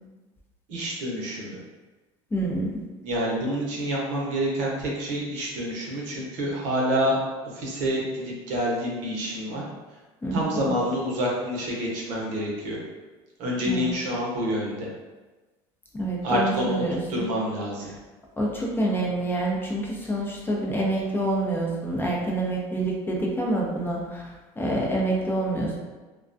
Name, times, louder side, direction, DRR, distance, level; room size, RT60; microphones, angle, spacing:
voice 1, 0.7-1.6 3.0-7.2 7.5-9.6 10.3-12.8 13.4-14.9 16.2-16.8 17.1-17.9, equal, 65° right, -3 dB, 0.7 m, -27 dB
voice 2, 2.3-2.8 10.2-10.7 13.7-13.9 15.9-17.2 18.4-24.2 24.6-25.8, right 1 dB, 15° left, -2 dB, 0.5 m, -27 dB
2.3 x 2.2 x 2.5 m, 1.2 s
supercardioid pair, 100°, 14 cm